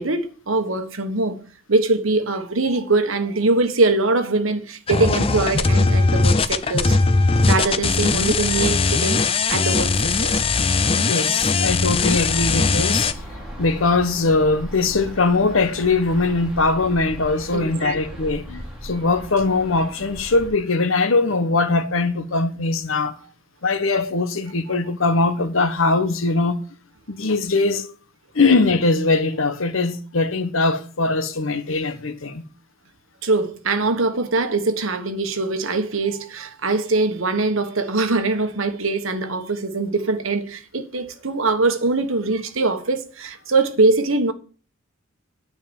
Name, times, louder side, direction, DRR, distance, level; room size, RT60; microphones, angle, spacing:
voice 1, 0.0-7.0 7.4-10.4 17.5-17.9 33.2-44.3, right 3 dB, 70° right, 1.3 m, -22 dB
sound 1, 4.9-13.1, left 3 dB, 25° left, 0.5 m, -19 dB
voice 2, 10.9-13.2 13.6-23.2 23.6-26.6 27.1-27.9 28.3-32.4, left 3 dB, 70° left, 1.1 m, -21 dB
sound 2, 11.8-20.5, equal, 5° right, 3.4 m, -37 dB
9.5 x 5.7 x 7.3 m
head